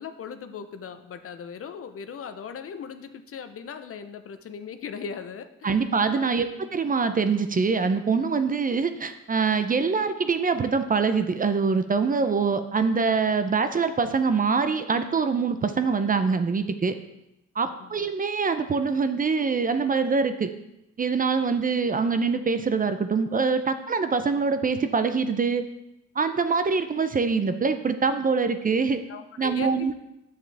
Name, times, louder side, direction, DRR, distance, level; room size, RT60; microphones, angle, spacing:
voice 1, 0.0-5.9 6.2-6.6 17.8-18.0 21.5-21.6 29.1-29.9, left 6 dB, 50° left, 9 dB, 0.7 m, -39 dB
voice 2, 5.6-17.0 17.6-20.5 21.0-25.6 26.2-29.0 29.4-29.9, right 5 dB, 30° right, 9 dB, 0.5 m, -24 dB
7.4 x 7.4 x 3.4 m, 0.88 s
cardioid pair, 90°, 30 cm